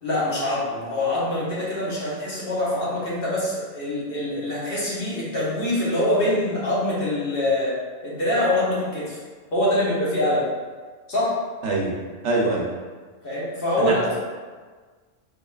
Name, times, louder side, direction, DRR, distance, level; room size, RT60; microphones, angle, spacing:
voice 1, 0.0-9.2 9.5-10.5 11.1-11.4 13.2-14.2, left 1 dB, 55° left, -8 dB, 1.3 m, -24 dB
voice 2, 12.2-12.7 13.8-14.2, right 2 dB, 85° right, -2 dB, 1.0 m, -23 dB
3.9 x 3.8 x 2.3 m, 1.5 s
omnidirectional pair, 1.2 m